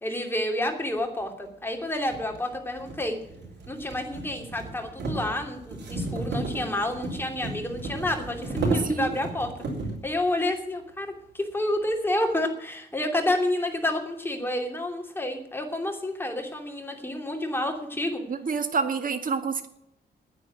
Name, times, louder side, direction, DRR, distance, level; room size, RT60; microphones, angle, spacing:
voice 1, 0.0-3.1 3.7-9.5 10.0-18.2, left 1 dB, 10° left, 3 dB, 2.9 m, -29 dB
sound 1, 1.2-1.3 2.0-10.1, right 3 dB, 75° right, 5.0 m, -33 dB
voice 2, 18.3-19.7, right 5 dB, 50° right, 8 dB, 1.8 m, -28 dB
10.5 x 9.7 x 9.4 m, 0.77 s
cardioid pair, 105°, 18 cm